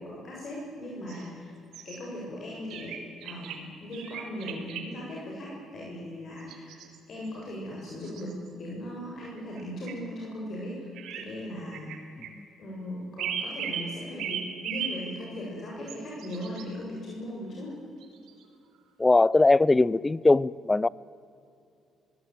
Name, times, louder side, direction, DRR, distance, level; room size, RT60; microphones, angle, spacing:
voice 1, 0.0-1.6 1.8-2.9 3.2-6.8 7.1-8.3 8.6-11.9 12.6-17.7, left 1 dB, 50° left, -4 dB, 7.4 m, -38 dB
sound 1, 1.1-1.3 1.7-2.0 2.7-3.6 3.9-4.8 6.4-7.3 7.9-8.5 9.4-9.6 9.9-10.0 10.9-11.3 11.7-12.3 13.2-13.9 14.2-15.0 15.9-16.6 18.0-18.4, right 8 dB, 80° right, 3.5 m, -36 dB
voice 2, 19.0-20.9, left 2 dB, 15° left, 22 dB, 0.5 m, -21 dB
23.5 x 18.0 x 9.2 m, 2.5 s
cardioid pair, 105°, 0 cm